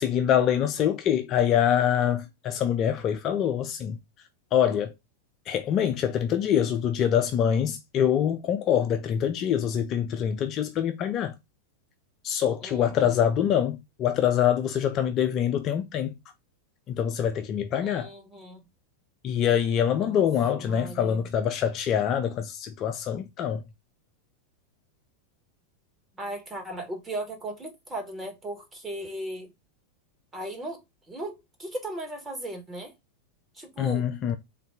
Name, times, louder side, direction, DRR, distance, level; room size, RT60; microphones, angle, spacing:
voice 1, 0.0-4.0 4.5-4.9 5.5-11.4 12.2-16.2 16.9-18.1 19.2-23.6 33.8-34.4, left 9 dB, 35° left, 0.5 m, -25 dB
voice 2, 12.6-13.1 17.8-18.6 20.0-20.2 20.6-21.3 26.1-29.5 30.3-32.9 33.5-34.1, right 1 dB, 15° right, 1.3 m, -37 dB
3.8 x 2.2 x 3.6 m
figure-of-eight pair, 90°, 0 cm